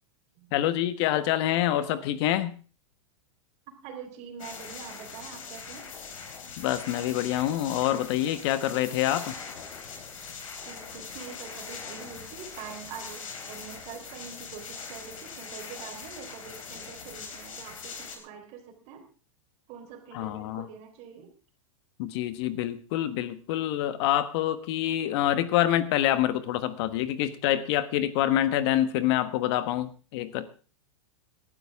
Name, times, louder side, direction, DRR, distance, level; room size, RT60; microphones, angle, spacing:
voice 1, 0.5-2.5 6.6-9.4 20.1-20.7 22.0-30.5, left 12 dB, 55° left, 13 dB, 1.4 m, -26 dB
voice 2, 3.8-5.9 10.7-19.1 19.7-21.3, right 7 dB, 45° right, 5 dB, 3.8 m, -44 dB
sound 1, 4.4-18.2, left 5 dB, 85° left, 3.9 m, -42 dB
18.5 x 12.0 x 3.6 m, 0.36 s
hypercardioid pair, 130°, 17 cm